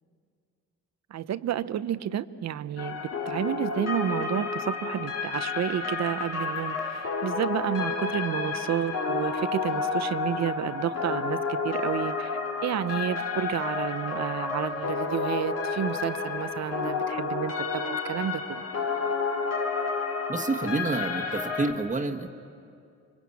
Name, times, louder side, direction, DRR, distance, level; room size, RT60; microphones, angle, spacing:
voice 1, 1.1-12.3 12.6-18.6, right 10 dB, 60° right, 14 dB, 0.8 m, -31 dB
sound 1, 2.8-21.7, left 4 dB, 55° left, 4.1 m, -30 dB
voice 2, 20.3-22.3, right 3 dB, 25° right, 3 dB, 1.6 m, -28 dB
27.5 x 24.0 x 8.6 m, 2.4 s
cardioid pair, 90°, 30 cm